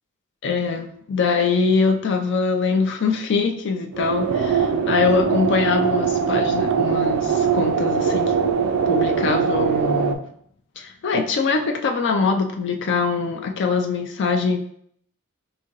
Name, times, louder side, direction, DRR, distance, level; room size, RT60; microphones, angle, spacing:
voice 1, 0.4-8.3 8.9-10.2 10.8-14.6, left 4 dB, 55° left, 4 dB, 0.4 m, -23 dB
sound 1, 3.9-10.1, right 6 dB, 75° right, 0.4 m, -21 dB
4.7 x 2.7 x 2.9 m, 0.66 s
head